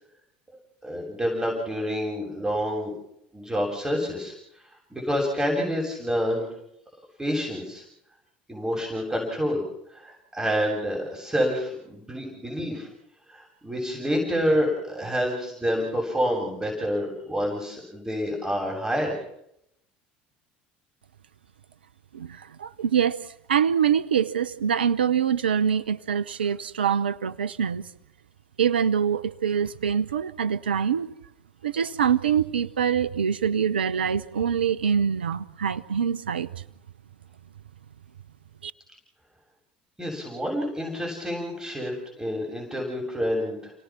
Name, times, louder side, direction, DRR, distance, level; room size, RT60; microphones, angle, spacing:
voice 1, 0.8-2.9 3.3-4.4 4.9-6.5 7.2-7.8 8.5-9.6 9.9-12.9 13.3-19.2 40.0-43.7, equal, 10° right, 7.6 m, -28 dB
voice 2, 22.1-27.9 28.6-31.1 31.6-36.5 38.6-38.7, right 8 dB, 90° right, 0.9 m, -24 dB
30.0 x 18.5 x 6.1 m
hypercardioid pair, 70°, 5 cm